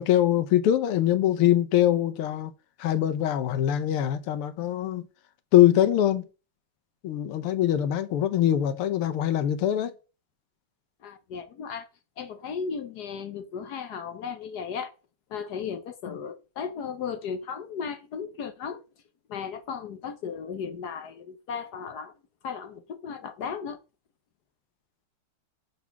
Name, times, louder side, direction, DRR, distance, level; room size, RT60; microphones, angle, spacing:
voice 1, 0.0-2.5 2.8-5.1 5.5-6.3 7.0-9.9, left 12 dB, 85° left, 1.7 m, -23 dB
voice 2, 11.0-11.9 12.2-14.9 15.3-18.8 19.3-22.1 22.4-23.8, left 6 dB, 60° left, 1.1 m, -35 dB
6.3 x 4.8 x 5.8 m
omnidirectional pair, 2.4 m